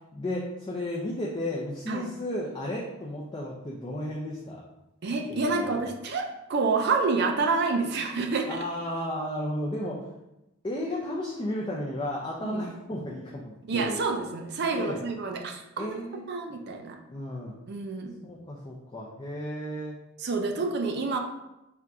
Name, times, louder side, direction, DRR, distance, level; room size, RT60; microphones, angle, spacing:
voice 1, 0.1-4.6 5.3-5.8 8.5-10.0 10.6-14.0 14.7-15.0 15.8-16.2 17.1-17.6 18.2-20.0 20.5-20.6, left 1 dB, 20° left, -4 dB, 0.4 m, -33 dB
voice 2, 5.0-8.6 12.4-12.7 13.7-15.9 16.3-17.0 17.7-18.1 20.2-21.2, right 4 dB, 50° right, 3 dB, 0.4 m, -28 dB
4.3 x 2.5 x 3.5 m, 0.93 s
head